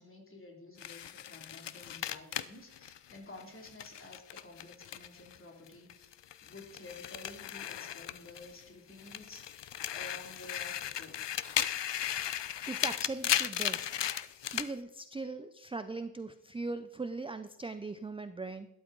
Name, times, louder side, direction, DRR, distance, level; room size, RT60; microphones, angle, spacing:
voice 1, 0.0-6.1 6.4-9.4 9.9-11.2, left 2 dB, 30° left, 1 dB, 2.6 m, -51 dB
sound 1, 0.8-5.4 5.7-8.6 9.0-14.7, left 11 dB, 75° left, 0.6 m, -36 dB
voice 2, 12.6-13.9 14.5-18.7, right 3 dB, 15° right, 11 dB, 0.4 m, -40 dB
12.5 x 11.5 x 3.8 m, 0.89 s
wide cardioid pair, 135°, 43 cm